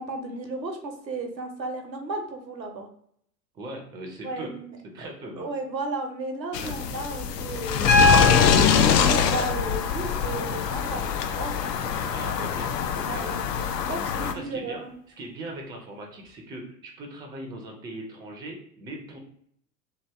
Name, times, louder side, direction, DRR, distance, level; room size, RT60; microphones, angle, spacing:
voice 1, 0.0-2.9 4.2-11.0 11.4-11.5 13.0-13.5 13.7-15.0, right 2 dB, 90° right, 5 dB, 0.8 m, -34 dB
voice 2, 3.5-4.5 4.9-5.5 6.6-6.7 10.9-11.1 12.1-12.7 13.1-13.4 14.2-14.8 15.2-19.2, right 1 dB, 10° right, 1 dB, 0.4 m, -39 dB
sound 1, 6.5-14.3, left 7 dB, 75° left, 0.6 m, -24 dB
Piano, 7.9-11.9 13.4-13.5, left 2 dB, 40° left, 0.9 m, -25 dB
2.9 x 2.7 x 3.3 m, 0.68 s
figure-of-eight pair, 85°, 50 cm